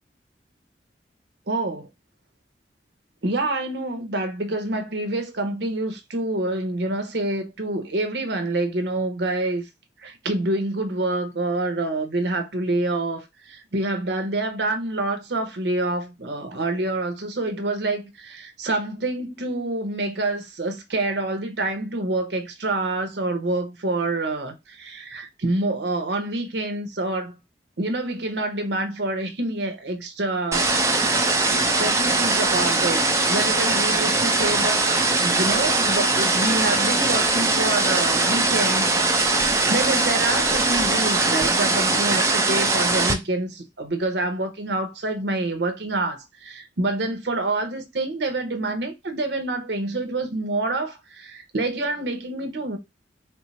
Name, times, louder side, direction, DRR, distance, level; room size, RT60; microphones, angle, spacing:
voice 1, 1.5-1.9 3.2-9.6 10.0-27.4 27.8-31.1 31.5-52.8, right 2 dB, 75° right, 0.9 m, -27 dB
sound 1, 30.5-43.1, right 3 dB, 15° right, 0.6 m, -21 dB
4.4 x 2.0 x 4.1 m
head